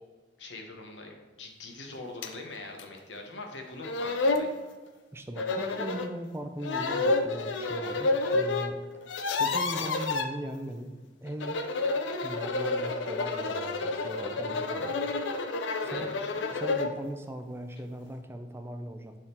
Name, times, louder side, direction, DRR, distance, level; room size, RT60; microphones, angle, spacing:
voice 1, 0.4-4.6 15.8-16.3, left 2 dB, 70° left, 3 dB, 1.0 m, -43 dB
sound 1, 2.2-2.3 2.8-2.9 3.5-3.6 3.8-4.5 5.4-6.1 6.6-8.7 9.0-10.3 11.3-17.0, left 3 dB, 90° left, 0.5 m, -29 dB
voice 2, 5.1-8.8 9.4-10.9 11.2-11.6 12.2-15.0 15.8-16.1 16.5-19.1, right 1 dB, 15° right, 6 dB, 0.4 m, -39 dB
6.4 x 3.7 x 4.3 m, 1.3 s
head